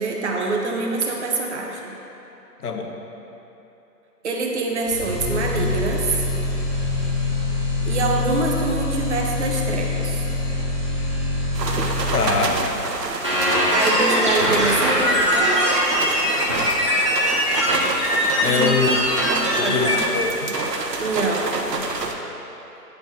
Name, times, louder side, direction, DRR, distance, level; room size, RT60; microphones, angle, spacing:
voice 1, 0.0-1.9 4.2-6.3 7.8-10.2 13.7-15.5 18.4-18.7 19.1-20.0 21.0-21.6, right 3 dB, 45° right, 0 dB, 0.9 m, -25 dB
voice 2, 2.6-3.0 12.1-12.6 18.4-18.9 19.6-20.5, left 4 dB, 65° left, 3 dB, 0.9 m, -23 dB
sound 1, 4.8-12.8, left 2 dB, 15° left, 1.1 m, -25 dB
sound 2, 11.5-22.1, right 3 dB, 80° right, 0.9 m, -28 dB
sound 3, 13.2-20.0, equal, 20° right, 0.5 m, -21 dB
9.0 x 4.5 x 4.1 m, 3.0 s
figure-of-eight pair, 150°, 49 cm